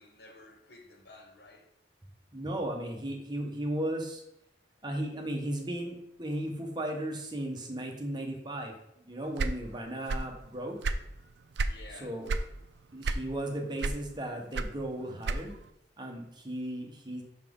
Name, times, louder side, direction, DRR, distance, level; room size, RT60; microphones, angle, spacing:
voice 1, 0.0-1.7 11.6-12.2, left 2 dB, 65° left, 3 dB, 1.1 m, -52 dB
voice 2, 2.3-4.2 4.8-8.7 9.0-10.8 12.0-12.3 12.9-15.5 16.0-17.2, right 1 dB, 25° right, 2 dB, 1.0 m, -35 dB
sound 1, 9.4-10.4 10.7-11.8 12.3-12.5 13.0-13.5 13.8-15.7, right 3 dB, 75° right, 0.4 m, -31 dB
5.9 x 5.8 x 3.7 m, 0.80 s
head